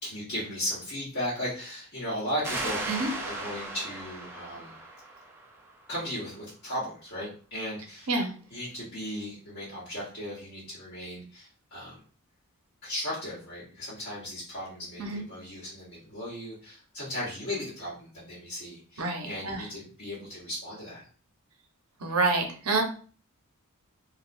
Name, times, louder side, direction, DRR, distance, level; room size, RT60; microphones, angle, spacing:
voice 1, 0.0-2.8 3.2-4.7 5.9-8.2 8.5-12.0 12.8-21.0, equal, 50° left, -9 dB, 1.1 m, -36 dB
sound 1, 2.4-5.8, right 2 dB, 10° right, 0.5 m, -36 dB
voice 2, 19.0-19.6 22.0-22.8, right 3 dB, 80° right, 3 dB, 0.8 m, -27 dB
3.5 x 2.4 x 2.6 m, 0.41 s
head